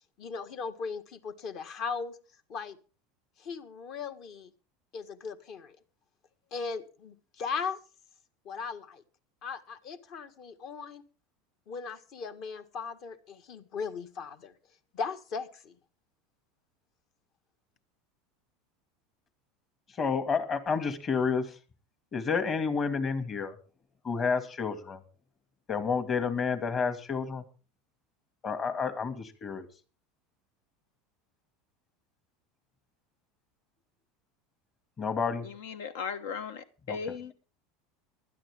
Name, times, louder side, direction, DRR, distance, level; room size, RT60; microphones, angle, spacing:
voice 1, 0.2-2.2 2.5-2.8 3.4-4.5 4.9-5.8 6.5-7.8 8.5-9.0 9.4-11.0 11.7-14.5 14.9-15.8, left 5 dB, 50° left, 1.9 m, -38 dB
voice 2, 20.0-21.5 22.1-23.5 24.0-25.0 25.7-27.4 28.4-29.7 35.0-35.5 36.9-37.0, left 5 dB, 30° left, 2.4 m, -30 dB
voice 3, 35.4-37.3, left 6 dB, 80° left, 1.1 m, -37 dB
20.0 x 12.5 x 3.7 m
supercardioid pair, 115°, 0 cm